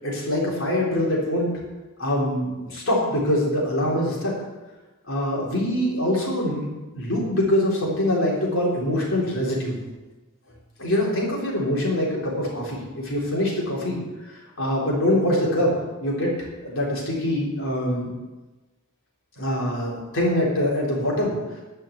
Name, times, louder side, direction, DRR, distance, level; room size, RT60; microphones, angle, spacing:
voice 1, 0.0-1.5 2.0-4.3 5.1-6.7 6.9-9.8 10.8-14.0 14.3-15.7 16.0-16.3 16.6-18.1 19.4-21.4, left 1 dB, 65° left, -4 dB, 4.2 m, -24 dB
11.5 x 6.0 x 8.5 m, 1.2 s
head